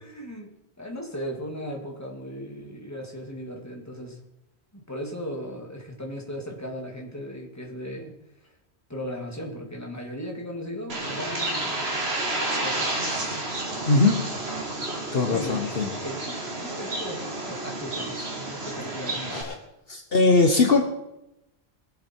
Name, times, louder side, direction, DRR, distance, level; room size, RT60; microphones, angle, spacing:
voice 1, 0.0-4.2 4.7-8.1 8.9-11.8 12.6-13.3 15.2-15.6 16.0-19.5, equal, 15° left, 0 dB, 2.5 m, -37 dB
Bird, 10.9-19.4, right 2 dB, 70° right, 2.4 m, -31 dB
voice 2, 13.9-14.2 15.1-15.9 19.3-19.5 19.9-20.8, left 3 dB, 60° left, 4 dB, 1.4 m, -20 dB
21.5 x 8.1 x 4.6 m, 0.90 s
omnidirectional pair, 1.1 m